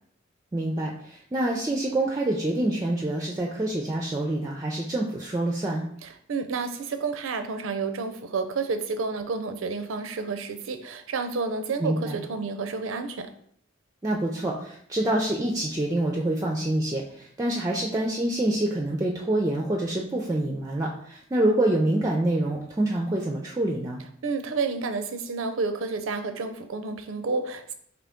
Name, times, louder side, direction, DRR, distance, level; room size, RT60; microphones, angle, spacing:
voice 1, 0.5-5.9 11.8-12.2 14.0-24.0, right 1 dB, 20° right, 0 dB, 0.4 m, -26 dB
voice 2, 6.0-13.3 24.2-27.7, right 4 dB, 85° right, 8 dB, 0.5 m, -30 dB
3.8 x 2.9 x 3.5 m, 0.65 s
head